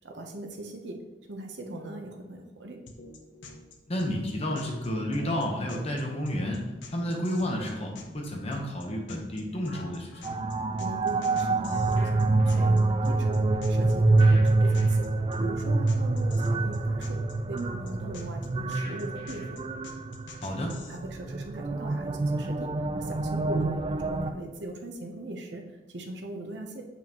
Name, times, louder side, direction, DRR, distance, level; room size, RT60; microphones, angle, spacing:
voice 1, 0.0-1.0 1.3-2.8 10.8-15.1 15.4-19.5 20.9-26.8, right 1 dB, 65° right, 3 dB, 0.9 m, -40 dB
sound 1, 2.9-21.0, left 3 dB, 80° left, 0.8 m, -47 dB
voice 2, 3.9-6.6 6.9-10.4 20.4-20.8, left 1 dB, 35° left, 0 dB, 1.0 m, -31 dB
sound 2, 10.2-24.3, right 2 dB, 30° right, 0.3 m, -26 dB
7.4 x 5.5 x 3.0 m, 1.1 s
head